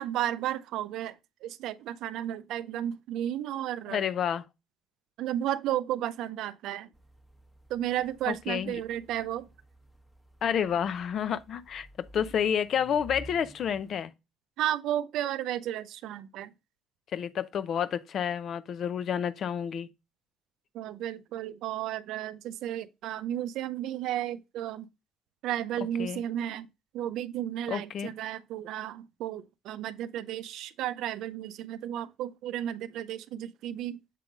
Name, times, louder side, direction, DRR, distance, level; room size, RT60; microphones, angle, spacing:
voice 1, 0.0-4.0 5.2-6.9 7.7-9.5 14.6-16.5 20.7-24.9 25.4-26.7 26.9-34.0, right 11 dB, 70° right, 0.4 m, -33 dB
voice 2, 3.9-4.4 8.3-8.8 10.4-14.1 17.1-19.9 26.0-26.2 27.7-28.1, left 8 dB, 55° left, 0.6 m, -30 dB
sound 1, 6.9-14.0, right 1 dB, 10° left, 1.0 m, -52 dB
7.4 x 3.7 x 3.8 m
supercardioid pair, 80°, 0 cm